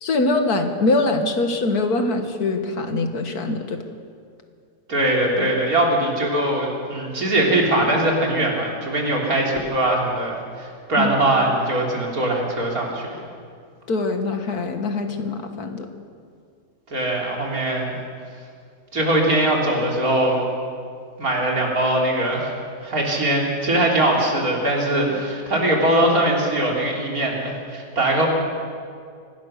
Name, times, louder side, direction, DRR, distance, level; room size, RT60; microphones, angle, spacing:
voice 1, 0.0-3.8 11.0-11.2 13.9-15.9, left 2 dB, 65° left, 5 dB, 2.1 m, -23 dB
voice 2, 4.9-13.1 16.9-18.0 18.9-20.4 21.2-22.5 22.8-28.3, right 1 dB, 60° right, -2 dB, 4.1 m, -21 dB
24.5 x 17.5 x 6.6 m, 2.2 s
omnidirectional pair, 1.7 m